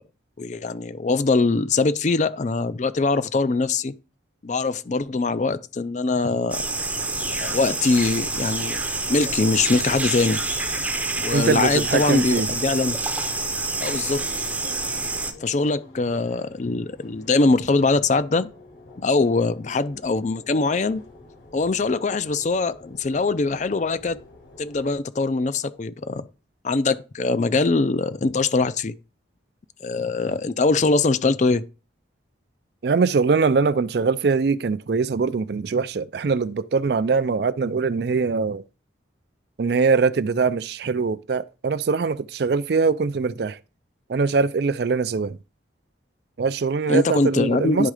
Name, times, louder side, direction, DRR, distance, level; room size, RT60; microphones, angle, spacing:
voice 1, 0.4-3.9 4.4-6.6 7.3-8.8 9.1-10.4 11.2-13.0 13.8-14.2 15.4-18.5 19.0-21.0 21.5-24.2 24.6-26.3 26.6-28.9 29.8-31.6 46.9-47.9, left 3 dB, 40° left, 0.4 m, -22 dB
sound 1, 6.5-15.3, right 3 dB, 10° right, 0.6 m, -27 dB
sound 2, 8.2-25.0, left 1 dB, 75° left, 4.5 m, -49 dB
voice 2, 11.3-12.5 32.8-38.6 39.6-43.6 44.1-45.4 46.4-47.9, right 4 dB, 55° right, 0.4 m, -22 dB
10.5 x 3.6 x 4.9 m
head